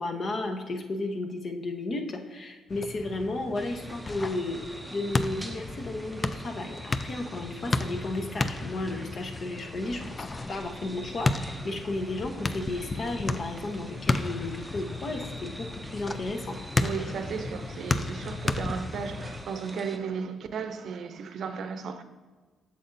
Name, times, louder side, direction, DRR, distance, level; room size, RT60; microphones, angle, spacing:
voice 1, 0.0-10.0 10.5-16.5, left 2 dB, 45° left, 0.9 m, -33 dB
sound 1, 2.7-19.4, left 3 dB, 30° left, 0.4 m, -33 dB
sound 2, 3.5-20.0, right 1 dB, 5° right, 0.7 m, -45 dB
voice 2, 16.8-22.0, right 6 dB, 65° right, 0.6 m, -35 dB
8.4 x 6.8 x 2.6 m
cardioid pair, 90°, 0 cm